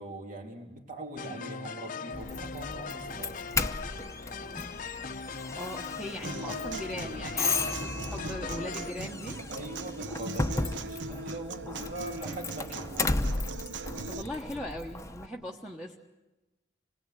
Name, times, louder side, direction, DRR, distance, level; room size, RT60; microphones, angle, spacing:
voice 1, 0.0-3.3 9.5-13.1 15.3-15.4, right 2 dB, 50° right, 2 dB, 3.1 m, -42 dB
sound 1, 1.2-8.9, left 5 dB, 45° left, 0.7 m, -40 dB
Doorbell, 2.1-15.3, left 3 dB, 15° left, 0.8 m, -35 dB
voice 2, 5.5-9.4 14.1-16.0, left 1 dB, 5° right, -1 dB, 1.3 m, -39 dB
Human voice / Acoustic guitar, 6.2-14.2, right 3 dB, 85° right, 0.8 m, -40 dB
26.5 x 20.0 x 8.4 m, 1.1 s
head